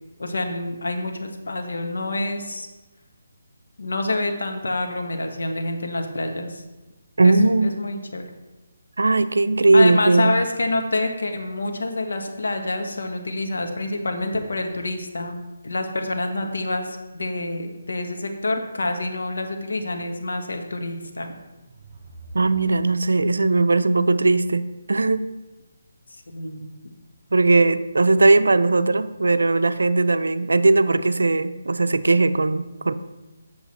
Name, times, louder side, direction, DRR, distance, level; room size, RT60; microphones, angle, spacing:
voice 1, 0.2-2.7 3.8-6.6 7.2-7.3 7.6-8.2 9.7-15.4 15.6-21.3 26.3-26.7, left 2 dB, 80° left, 4 dB, 1.4 m, -27 dB
voice 2, 7.2-7.7 9.0-10.4 22.3-25.3 27.3-32.9, right 3 dB, 90° right, 13 dB, 0.5 m, -18 dB
sound 1, 21.5-23.4, right 2 dB, 30° right, 1.1 m, -45 dB
8.1 x 6.9 x 4.2 m, 1.1 s
hypercardioid pair, 165°, 0 cm